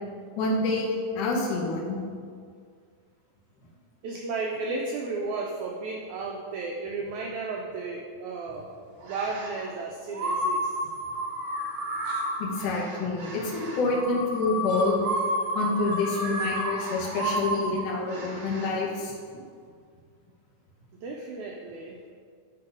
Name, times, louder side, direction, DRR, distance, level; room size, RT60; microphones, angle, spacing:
voice 1, 0.4-2.0 12.4-15.0 15.5-19.1, left 3 dB, 70° left, -3 dB, 2.6 m, -27 dB
voice 2, 4.0-8.7 9.0-10.7 21.0-22.0, right 3 dB, 80° right, -1 dB, 1.7 m, -33 dB
sound 1, 9.0-9.6 10.1-18.7, right 1 dB, 65° right, 1.3 m, -31 dB
10.5 x 3.8 x 4.9 m, 2.1 s
omnidirectional pair, 4.1 m